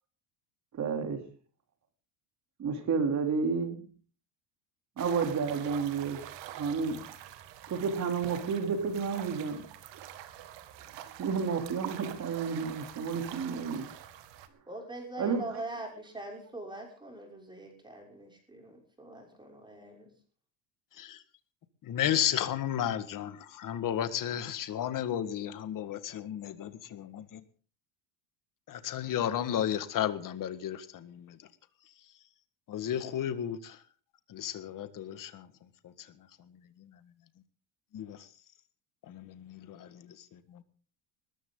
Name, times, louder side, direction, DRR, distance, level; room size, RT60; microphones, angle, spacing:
voice 1, 0.7-1.2 2.6-3.9 5.0-6.2 6.6-7.0 7.7-9.6 11.2-13.9 15.2-15.4, right 5 dB, 35° right, 3.3 m, -31 dB
sound 1, 5.0-14.5, right 11 dB, 60° right, 2.1 m, -45 dB
voice 2, 14.7-20.1, right 2 dB, 10° right, 6.2 m, -43 dB
voice 3, 21.8-27.4 28.7-31.4 32.7-33.8 34.3-35.5 37.9-38.2 39.1-39.9, left 10 dB, 40° left, 1.8 m, -33 dB
20.5 x 14.0 x 3.9 m
cardioid pair, 145°, 50 cm